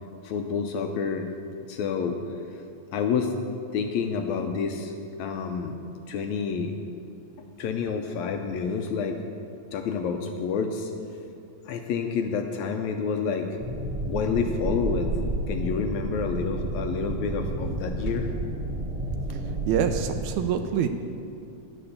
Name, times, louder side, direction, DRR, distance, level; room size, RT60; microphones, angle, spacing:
voice 1, 0.2-1.3 1.7-2.2 2.9-3.3 3.7-4.9 5.2-5.8 6.1-6.7 7.4-9.2 9.7-10.9 11.7-13.5 14.0-15.1 15.5-18.3, left 6 dB, 80° left, 5 dB, 1.7 m, -28 dB
sound 1, 13.6-20.3, right 2 dB, 35° right, 1.9 m, -31 dB
voice 2, 19.7-20.9, right 8 dB, 80° right, 6 dB, 1.7 m, -25 dB
11.0 x 8.6 x 6.6 m, 2.6 s
omnidirectional pair, 3.8 m